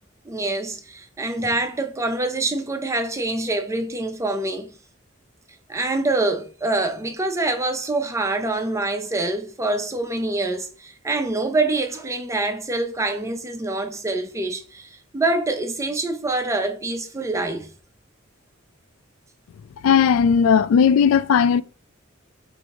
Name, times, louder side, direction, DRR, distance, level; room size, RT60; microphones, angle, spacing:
voice 1, 0.2-4.7 5.7-17.7, right 2 dB, 15° right, 0.5 m, -25 dB
voice 2, 19.8-21.6, left 7 dB, 80° left, 0.3 m, -16 dB
4.8 x 2.6 x 2.9 m
head